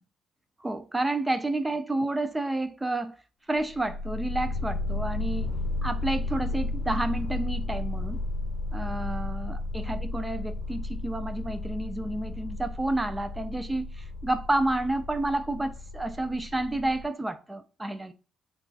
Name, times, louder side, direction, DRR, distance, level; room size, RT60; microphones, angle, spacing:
voice 1, 0.6-3.1 3.5-5.5 5.8-8.2 8.7-18.1, right 2 dB, 10° right, 0.4 m, -30 dB
sound 1, 3.6-17.0, left 2 dB, 40° left, 0.7 m, -33 dB
3.0 x 2.3 x 3.9 m
cardioid pair, 110°, 0 cm